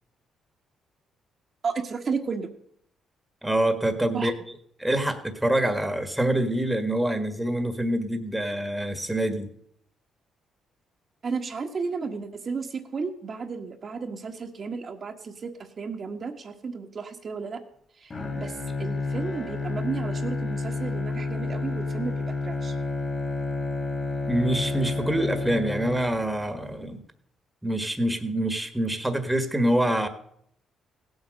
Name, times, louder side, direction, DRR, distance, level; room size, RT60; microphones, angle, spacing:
voice 1, 1.6-2.5 4.1-4.3 11.2-15.5 15.8-17.6 18.0-22.7, right 5 dB, 45° right, 4 dB, 1.6 m, -33 dB
voice 2, 3.4-4.3 4.8-9.5 24.3-27.0 27.6-30.1, right 1 dB, 5° right, 8 dB, 1.6 m, -25 dB
Bowed string instrument, 18.1-26.4, left 3 dB, 35° left, 2.4 m, -30 dB
16.5 x 7.9 x 6.4 m, 0.67 s
cardioid pair, 90°, 0 cm